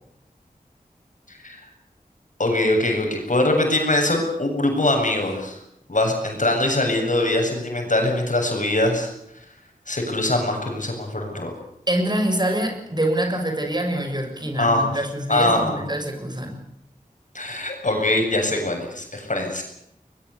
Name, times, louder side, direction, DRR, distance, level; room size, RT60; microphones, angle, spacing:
voice 1, 2.4-5.6 5.9-9.1 9.9-11.5 14.6-14.8 15.3-15.8 17.3-19.6, left 1 dB, 60° left, 3 dB, 7.8 m, -22 dB
voice 2, 11.9-16.6, right 1 dB, 30° right, 4 dB, 6.7 m, -25 dB
21.5 x 21.5 x 8.5 m, 0.78 s
wide cardioid pair, 45°, 15 cm